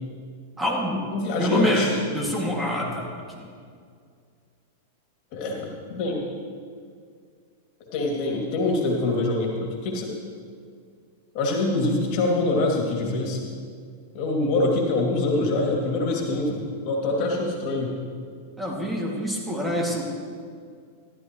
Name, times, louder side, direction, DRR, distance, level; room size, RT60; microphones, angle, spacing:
voice 1, 0.6-1.0 1.4-3.5 18.6-20.0, equal, 5° right, -2 dB, 2.3 m, -26 dB
voice 2, 1.1-1.9 5.3-6.2 7.9-10.2 11.3-13.4 14.1-17.9, left 2 dB, 50° left, 0 dB, 2.5 m, -25 dB
14.5 x 12.0 x 3.2 m, 2.1 s
hypercardioid pair, 105°, 0 cm